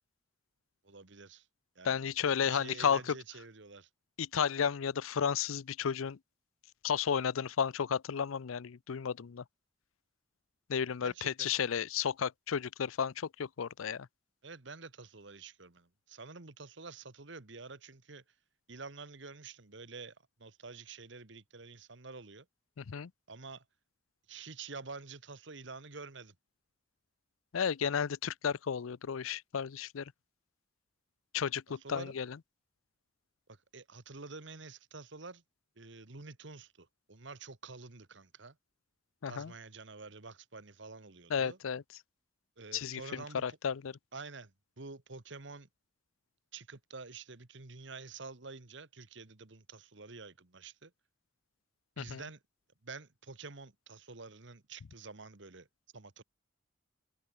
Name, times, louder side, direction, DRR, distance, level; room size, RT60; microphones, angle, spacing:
voice 1, 0.8-1.5 1.7-2.1 2.4-3.9 11.0-11.5 14.4-18.2 18.7-22.5 23.3-23.6 24.3-26.3 31.8-32.2 33.5-35.4 35.8-38.6 39.3-41.6 42.6-43.6 44.1-45.7 46.5-50.9 52.0-52.4 52.8-55.7 55.9-56.2, right 4 dB, 60° right, 1.5 m, -48 dB
voice 2, 1.8-3.1 4.2-6.2 6.8-9.4 10.7-14.1 22.8-23.1 27.5-30.0 31.3-32.4 39.2-39.5 41.3-41.8 42.7-44.0 52.0-52.2, left 7 dB, 90° left, 0.5 m, -33 dB
head